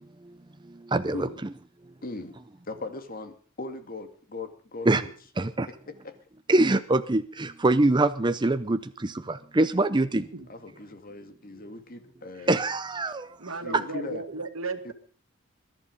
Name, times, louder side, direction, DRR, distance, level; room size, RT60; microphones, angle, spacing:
voice 1, 0.9-1.3 4.9-5.0 5.4-5.7 6.5-8.8 9.6-10.2 12.5-13.2, right 2 dB, 20° right, 10 dB, 0.7 m, -23 dB
voice 2, 2.0-2.4 2.7-5.1 5.7-6.2 10.5-12.6 13.6-14.2 14.8-14.9, left 2 dB, 45° left, 8 dB, 2.1 m, -39 dB
voice 3, 13.4-14.9, right 3 dB, 85° right, 7 dB, 2.3 m, -35 dB
21.5 x 11.5 x 5.2 m, 0.43 s
head